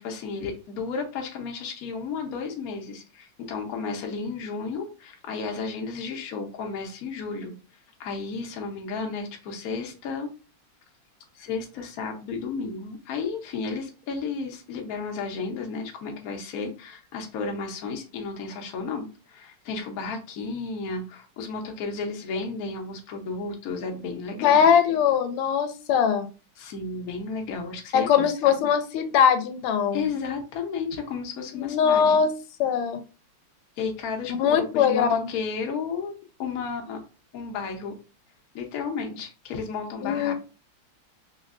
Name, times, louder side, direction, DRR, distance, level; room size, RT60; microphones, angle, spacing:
voice 1, 0.0-7.5 8.0-10.3 11.3-24.6 26.6-28.5 29.9-32.2 33.8-37.0 37.3-38.0 38.5-40.3, left 4 dB, 60° left, 2 dB, 1.0 m, -33 dB
voice 2, 24.4-26.3 27.9-30.1 31.5-32.3 32.6-33.0 34.4-35.3 40.0-40.3, left 7 dB, 85° left, 9 dB, 1.4 m, -21 dB
3.5 x 3.0 x 2.4 m, 0.34 s
omnidirectional pair, 2.4 m